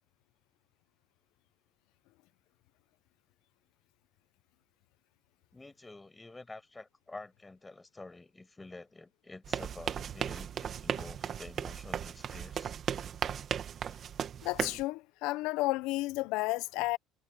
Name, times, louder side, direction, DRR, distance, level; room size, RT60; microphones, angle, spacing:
voice 1, 5.5-12.8, left 2 dB, 10° left, 6.1 m, -49 dB
sound 1, 9.4-14.8, right 8 dB, 35° right, 1.5 m, -36 dB
voice 2, 14.4-17.0, left 20 dB, 75° left, 0.6 m, -32 dB
cardioid pair, 150°, 0 cm